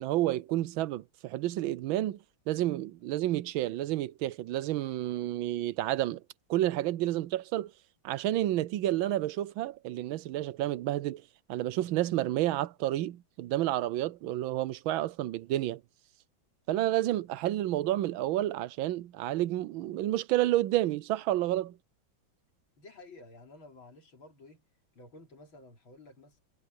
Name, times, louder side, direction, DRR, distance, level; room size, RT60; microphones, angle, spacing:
voice 1, 0.0-2.2 2.5-6.2 6.5-7.7 8.0-11.2 11.5-15.8 16.7-21.8, right 14 dB, 85° right, 1.5 m, -30 dB
voice 2, 22.8-24.6 24.9-26.4, left 2 dB, 80° left, 4.6 m, -52 dB
omnidirectional pair, 2.2 m